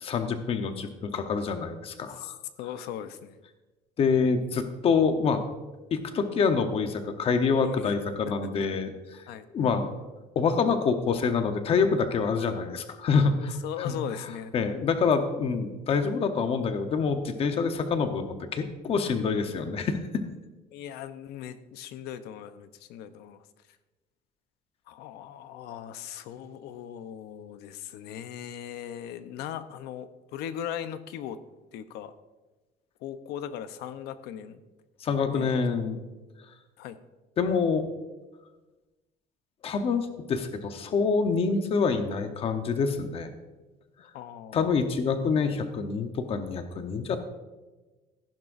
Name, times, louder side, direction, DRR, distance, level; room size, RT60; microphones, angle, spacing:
voice 1, 0.0-2.4 4.0-5.4 5.9-9.2 9.5-9.9 10.4-13.9 14.5-20.2 35.0-36.0 37.4-37.8 39.6-43.3 44.5-47.2, left 5 dB, 35° left, 7 dB, 0.9 m, -26 dB
voice 2, 2.6-3.4 7.6-8.0 8.2-8.5 9.3-9.5 13.3-14.5 20.7-23.4 24.9-31.4 31.7-32.1 33.0-34.6 35.3-35.5 36.8-37.0 44.1-44.7, left 10 dB, 90° left, 11 dB, 0.8 m, -39 dB
15.0 x 11.0 x 2.6 m, 1.2 s
cardioid pair, 170°, 16 cm